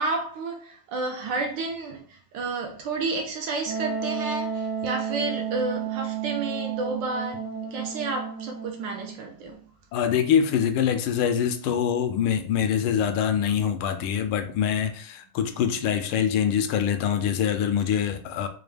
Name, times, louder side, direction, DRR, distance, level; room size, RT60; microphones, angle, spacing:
voice 1, 0.0-9.6, right 3 dB, 70° right, 1.2 m, -31 dB
Wind instrument woodwind instrument, 3.7-9.2, right 7 dB, 85° right, 1.5 m, -32 dB
voice 2, 9.9-18.5, left 8 dB, 80° left, 1.5 m, -24 dB
5.0 x 2.2 x 3.3 m
omnidirectional pair, 2.3 m